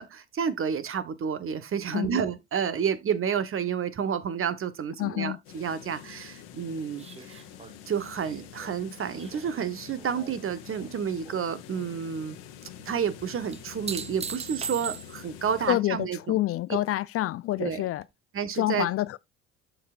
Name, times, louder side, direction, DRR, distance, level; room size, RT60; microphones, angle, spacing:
voice 1, 0.0-7.4 7.9-12.4 12.8-16.4 17.6-17.8 18.3-18.9, right 7 dB, 40° right, 1.4 m, -30 dB
voice 2, 5.0-5.4 15.7-18.0 18.5-19.2, left 15 dB, 45° left, 0.4 m, -27 dB
sound 1, 5.5-15.7, left 9 dB, 70° left, 1.8 m, -46 dB
sound 2, 7.0-10.5 10.8-11.4 13.5-15.4 18.0-18.1, right 6 dB, 20° right, 0.5 m, -40 dB
13.5 x 4.8 x 2.5 m
hypercardioid pair, 65°, 34 cm